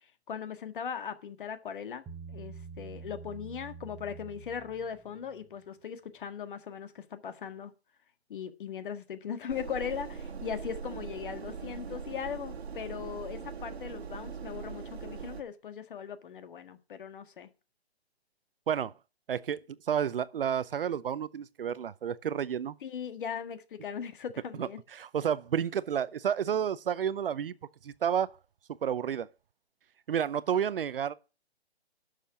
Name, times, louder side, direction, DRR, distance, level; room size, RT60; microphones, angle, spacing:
voice 1, 0.3-2.0 2.3-7.7 8.3-17.5 22.8-24.8, left 7 dB, 50° left, 1.7 m, -39 dB
Bass guitar, 2.1-5.5, right 5 dB, 10° right, 1.0 m, -46 dB
sound 1, 9.5-15.4, right 6 dB, 75° right, 1.5 m, -41 dB
voice 2, 19.3-19.6 19.9-22.8 24.6-27.5 27.8-28.3 28.7-29.3 30.1-31.1, right 8 dB, 60° right, 0.7 m, -30 dB
11.5 x 6.7 x 6.2 m
hypercardioid pair, 145°, 32 cm